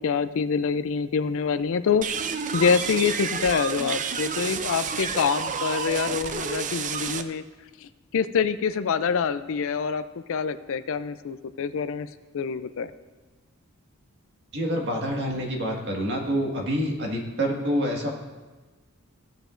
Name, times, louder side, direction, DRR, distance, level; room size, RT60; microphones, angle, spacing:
voice 1, 0.0-7.4 7.8-10.0 10.3-12.1 12.3-12.9, left 6 dB, 60° left, 12 dB, 0.4 m, -26 dB
sound 1, 2.0-7.2, right 6 dB, 35° right, 0.4 m, -30 dB
voice 2, 14.5-18.1, equal, 50° right, 0 dB, 1.7 m, -27 dB
16.0 x 7.8 x 2.5 m, 1.3 s
head